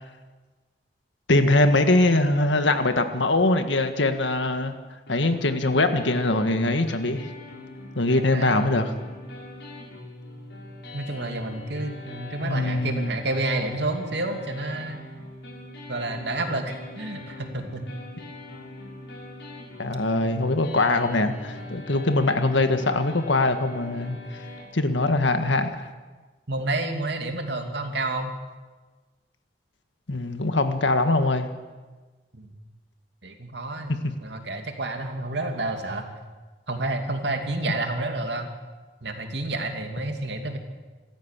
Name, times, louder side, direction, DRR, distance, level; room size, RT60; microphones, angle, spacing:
voice 1, 1.3-4.7 5.1-7.3 8.0-8.9 12.4-13.1 19.8-24.2 24.7-25.9 30.1-31.5 33.9-34.1, left 2 dB, 85° left, 8 dB, 1.7 m, -22 dB
sound 1, 5.1-24.6, left 1 dB, 70° left, 7.5 m, -41 dB
voice 2, 8.3-8.7 10.9-15.0 15.9-17.9 20.9-21.3 21.6-21.7 26.5-28.4 32.3-32.5 33.2-36.1 36.7-38.5 39.0-40.6, right 2 dB, 70° right, 4 dB, 2.7 m, -30 dB
26.5 x 14.0 x 7.5 m, 1.3 s
head